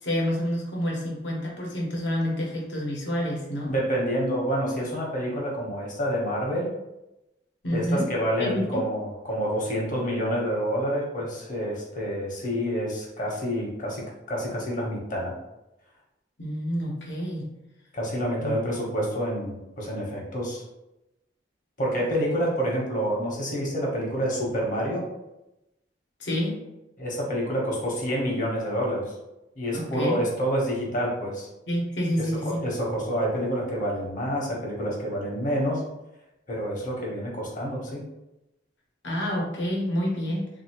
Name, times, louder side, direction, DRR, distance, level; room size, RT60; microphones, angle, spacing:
voice 1, 0.0-3.8 7.6-8.1 8.4-8.8 16.4-17.5 18.4-18.6 26.2-26.6 29.7-30.2 31.7-32.6 39.0-40.5, equal, 80° left, -3 dB, 1.0 m, -28 dB
voice 2, 3.7-6.7 7.7-15.3 17.9-20.6 21.8-25.0 27.0-29.1 29.6-31.5 32.2-35.8 36.5-38.0, equal, 50° left, -2 dB, 1.0 m, -28 dB
3.1 x 2.7 x 2.9 m, 0.94 s
head